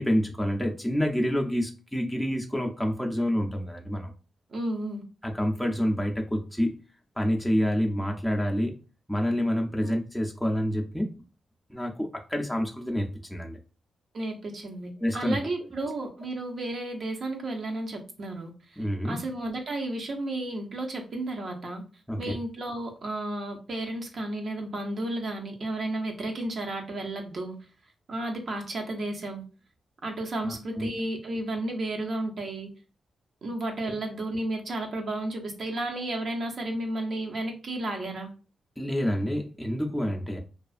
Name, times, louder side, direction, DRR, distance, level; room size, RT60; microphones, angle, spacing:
voice 1, 0.0-4.1 5.2-6.7 7.2-8.7 9.1-11.1 11.7-13.6 15.0-15.4 18.8-19.2 22.1-22.4 30.4-30.9 38.8-40.4, equal, 5° left, 0 dB, 0.4 m, -28 dB
voice 2, 4.5-5.0 9.8-9.9 14.1-21.8 22.2-27.6 28.1-29.4 30.0-32.7 33.4-38.3, right 1 dB, 60° right, 2 dB, 0.6 m, -33 dB
2.4 x 2.3 x 2.4 m, 0.34 s
cardioid pair, 70°, 0 cm